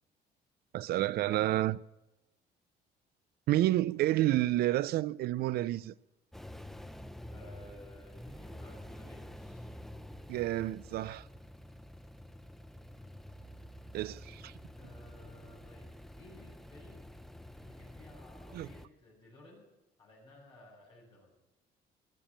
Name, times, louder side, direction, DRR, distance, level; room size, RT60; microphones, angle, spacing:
voice 1, 0.7-1.8 3.5-5.9 10.3-11.3 13.9-14.5 18.5-18.7, right 15 dB, 65° right, 0.5 m, -29 dB
sound 1, 6.3-18.9, left 1 dB, ahead, 0.8 m, -49 dB
voice 2, 7.3-9.8 14.7-15.9 16.2-17.1 17.6-19.7 20.0-21.3, left 1 dB, 30° left, 7.0 m, -56 dB
18.5 x 7.0 x 9.1 m
cardioid pair, 110°, 17 cm